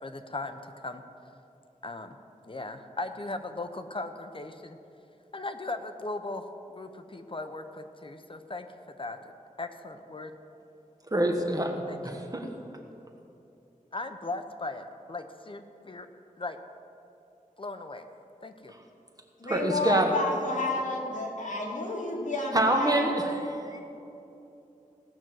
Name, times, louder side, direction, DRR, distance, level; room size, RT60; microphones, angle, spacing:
voice 1, 0.0-1.0 1.8-2.2 2.5-4.8 5.3-6.4 6.7-9.2 9.6-10.3 11.9-12.2 13.9-16.1 16.4-16.6 17.6-18.1 18.4-18.7, left 2 dB, 40° left, 7 dB, 0.8 m, -38 dB
voice 2, 11.1-11.7 12.0-12.5 19.5-20.1 22.5-23.8, right 1 dB, 25° right, 2 dB, 1.4 m, -26 dB
voice 3, 19.4-23.1, left 2 dB, 65° left, -3 dB, 2.6 m, -30 dB
17.0 x 6.2 x 7.6 m, 2.8 s
wide cardioid pair, 85°, 14 cm